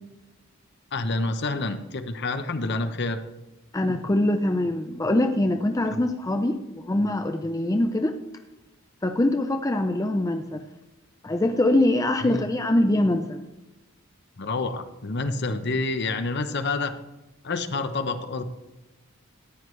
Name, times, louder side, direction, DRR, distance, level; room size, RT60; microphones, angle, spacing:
voice 1, 0.9-3.2 5.9-6.0 12.2-12.5 14.4-17.0 17.4-18.4, left 3 dB, 50° left, 9 dB, 0.8 m, -28 dB
voice 2, 3.7-8.2 9.0-10.6 11.2-13.4, left 1 dB, 15° left, 6 dB, 0.5 m, -23 dB
14.0 x 9.3 x 3.2 m, 1.0 s
head